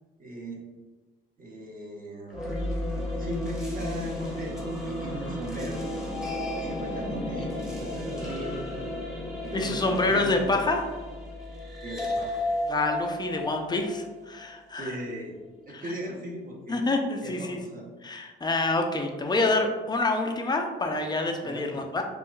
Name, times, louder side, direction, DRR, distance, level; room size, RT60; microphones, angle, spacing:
voice 1, 0.2-0.6 1.4-2.5 2.9-5.8 6.2-8.9 9.4-10.5 11.8-12.4 14.7-16.8 17.2-17.9 19.3-19.6 20.9-21.0 21.4-21.8, right 1 dB, 45° right, -2 dB, 1.0 m, -39 dB
sound 1, 2.3-14.5, left 1 dB, 5° right, 1.0 m, -33 dB
voice 2, 9.5-10.8 12.7-14.9 15.7-15.9 16.7-17.6 18.0-22.0, left 2 dB, 20° left, 3 dB, 0.5 m, -27 dB
4.4 x 2.4 x 2.3 m, 1.2 s
cardioid pair, 90°, 20 cm